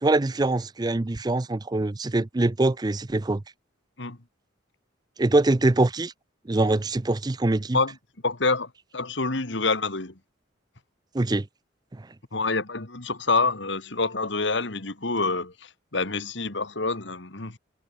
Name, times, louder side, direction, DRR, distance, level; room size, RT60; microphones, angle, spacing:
voice 1, 0.0-3.4 5.2-6.1 6.5-7.8 11.1-11.5, right 2 dB, 20° right, 0.5 m, -23 dB
voice 2, 8.2-10.1 12.3-17.6, left 3 dB, 65° left, 2.1 m, -27 dB
head